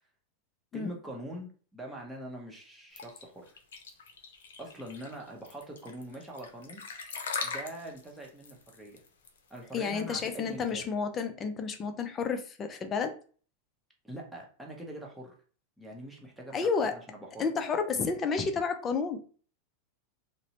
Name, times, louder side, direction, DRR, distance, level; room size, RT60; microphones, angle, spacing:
voice 1, 0.7-3.6 4.6-6.8 7.4-9.0 9.5-10.9 14.0-15.3 15.8-17.5, right 1 dB, 5° right, -2 dB, 0.8 m, -43 dB
sound 1, 3.0-10.6, left 5 dB, 85° left, 0.5 m, -40 dB
voice 2, 9.7-13.2 16.5-16.9 17.4-19.2, left 5 dB, 30° left, 7 dB, 0.4 m, -31 dB
2.6 x 2.1 x 2.9 m, 0.42 s
hypercardioid pair, 115°, 0 cm